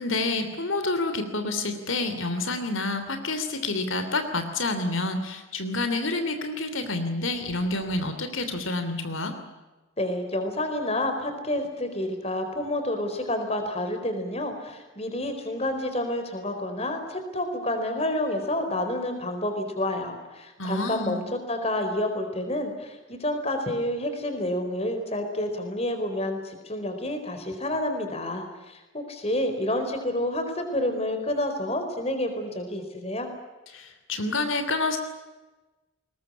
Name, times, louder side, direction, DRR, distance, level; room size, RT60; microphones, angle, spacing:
voice 1, 0.0-9.3 20.6-21.2 33.7-35.0, left 2 dB, 85° left, 7 dB, 3.0 m, -28 dB
voice 2, 10.0-33.3, left 1 dB, 30° left, 6 dB, 4.4 m, -29 dB
22.0 x 20.0 x 9.8 m, 1.1 s
head